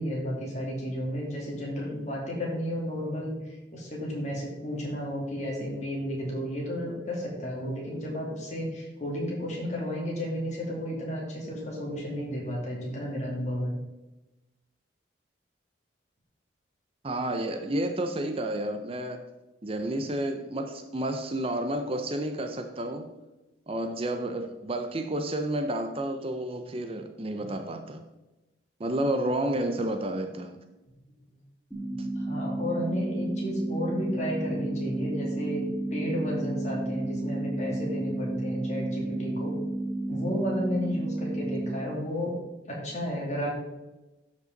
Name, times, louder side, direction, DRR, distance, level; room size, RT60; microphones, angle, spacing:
voice 1, 0.0-13.7 31.7-39.6 40.1-42.4 42.7-43.5, equal, 35° left, 2.7 m, -32 dB
voice 2, 17.0-19.2 19.6-23.0 23.7-28.0 28.8-30.6 32.0-32.1, right 1 dB, 30° right, 0.5 m, -30 dB
sound 1, 31.7-41.7, right 2 dB, ahead, 2.1 m, -32 dB
12.5 x 5.3 x 3.9 m
head